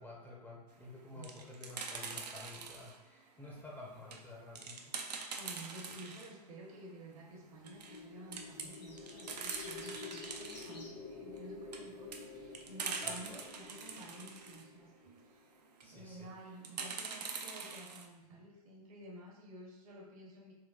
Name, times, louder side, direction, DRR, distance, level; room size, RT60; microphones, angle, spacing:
voice 1, 0.0-4.9 13.0-13.4 15.8-16.3, left 2 dB, 10° left, -4 dB, 0.5 m, -51 dB
sound 1, 1.0-3.0 3.5-6.3 6.7-6.8 7.1-7.2 7.5-8.0 8.3-10.7 11.4-14.6 15.6-15.9 16.6-18.1, right 5 dB, 80° right, 0.4 m, -44 dB
voice 2, 5.2-15.5 15.9-20.5, right 1 dB, 60° right, -1 dB, 1.0 m, -52 dB
sound 2, 7.3-15.7, left 4 dB, 55° left, 0.6 m, -50 dB
sound 3, 8.5-10.9 12.2-12.6, left 1 dB, 90° left, 1.0 m, -54 dB
3.8 x 2.1 x 2.3 m, 0.98 s
hypercardioid pair, 115°, 20 cm